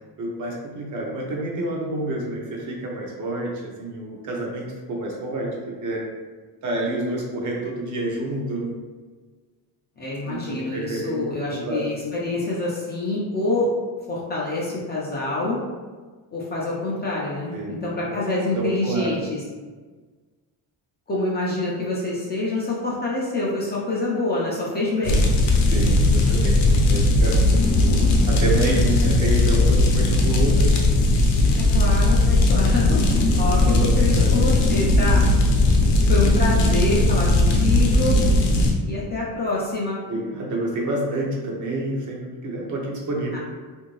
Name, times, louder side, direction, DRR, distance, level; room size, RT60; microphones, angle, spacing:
voice 1, 0.2-6.0 6.6-8.7 10.2-11.2 11.5-11.9 17.5-18.1 18.5-19.2 25.7-27.4 28.3-30.8 33.6-34.4 40.0-43.4, right 2 dB, 45° right, -1 dB, 0.6 m, -28 dB
voice 2, 10.0-13.7 14.1-15.6 16.3-19.4 21.1-25.2 28.8-28.9 31.6-33.0 33.3-33.6 34.0-35.2 36.1-38.2 38.8-40.0 43.3-43.4, left 2 dB, 25° left, -5 dB, 0.4 m, -26 dB
sound 1, 25.0-38.7, left 2 dB, 75° left, 0.7 m, -18 dB
2.7 x 2.6 x 3.0 m, 1.4 s
cardioid pair, 150°, 42 cm